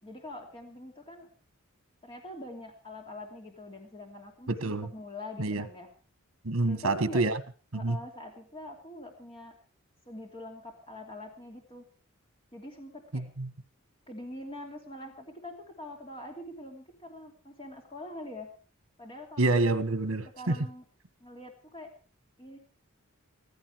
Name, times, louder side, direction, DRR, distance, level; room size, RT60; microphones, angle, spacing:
voice 1, 0.0-1.3 2.0-5.9 6.6-7.2 7.7-9.5 10.1-11.9 12.5-13.2 14.1-18.5 19.0-19.4 20.2-20.8 21.2-21.9 22.4-22.6, left 1 dB, 25° left, 2.9 m, -44 dB
voice 2, 4.5-4.9 5.4-5.6 6.4-7.4 7.7-8.0 13.1-13.5 19.4-20.5, right 2 dB, 75° right, 1.5 m, -27 dB
15.5 x 15.5 x 4.7 m
head